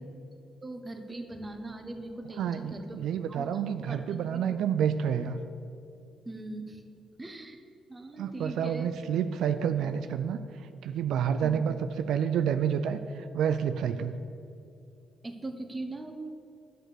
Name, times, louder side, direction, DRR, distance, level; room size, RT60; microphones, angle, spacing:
voice 1, 0.6-3.0 3.3-3.4 3.9-4.6 6.2-6.8 7.2-7.6 7.9-8.9 11.4-11.6 15.2-16.1, right 2 dB, 20° right, 5 dB, 1.1 m, -40 dB
voice 2, 2.4-5.4 8.2-14.2, right 8 dB, 75° right, 9 dB, 0.4 m, -29 dB
9.9 x 6.4 x 6.8 m, 2.6 s
cardioid pair, 90°, 0 cm